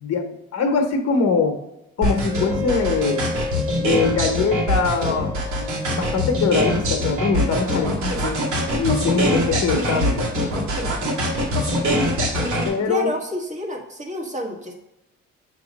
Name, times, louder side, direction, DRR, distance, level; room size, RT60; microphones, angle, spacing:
voice 1, 0.0-1.6 2.0-3.2 3.8-5.3 5.6-5.7 5.9-8.4 8.8-10.3 12.7-13.1, left 4 dB, 55° left, 4 dB, 1.1 m, -22 dB
sound 1, 2.0-12.7, equal, 85° right, 2.2 m, -23 dB
Wind instrument woodwind instrument, 2.3-7.3, left 2 dB, 10° right, 1.7 m, -32 dB
voice 2, 12.8-14.7, equal, 25° right, 1 dB, 1.6 m, -29 dB
7.7 x 3.0 x 5.2 m, 0.90 s
cardioid pair, 90°, 30 cm